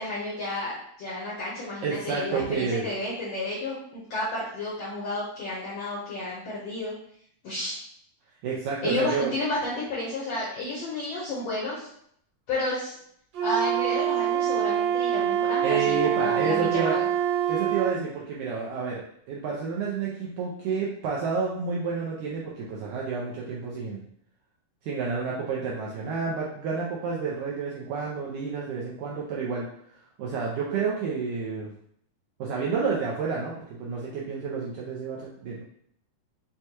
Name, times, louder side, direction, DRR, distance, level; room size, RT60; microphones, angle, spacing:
voice 1, 0.0-6.9 7.4-7.8 8.8-11.9 12.5-13.0 13.4-17.0, left 2 dB, 75° left, -6 dB, 1.4 m, -31 dB
voice 2, 1.8-2.9 8.4-9.3 15.6-17.0 17.5-19.0 19.3-24.0 24.8-29.7 30.2-31.7 32.4-35.6, right 5 dB, 85° right, -4 dB, 1.8 m, -30 dB
Wind instrument woodwind instrument, 13.3-18.0, right 10 dB, 65° right, 1.6 m, -25 dB
6.3 x 2.2 x 2.8 m, 0.68 s
omnidirectional pair, 4.1 m